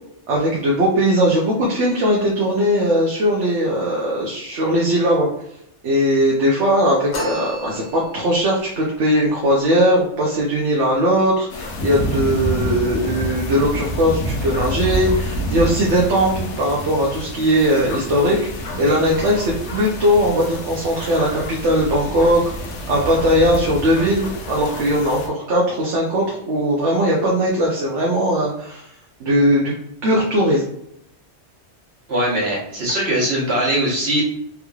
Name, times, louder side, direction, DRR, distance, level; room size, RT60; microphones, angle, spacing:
voice 1, 0.3-5.3 5.8-22.4 22.9-28.9 29.2-29.7 30.0-30.6, equal, 80° right, -3 dB, 1.1 m, -19 dB
sound 1, 7.1-8.4, equal, 55° left, 1.1 m, -30 dB
sound 2, 11.5-25.3, equal, 80° left, 1.0 m, -28 dB
voice 2, 32.1-34.2, right 1 dB, 65° right, -4 dB, 1.6 m, -21 dB
3.6 x 3.0 x 2.3 m, 0.78 s
omnidirectional pair, 1.2 m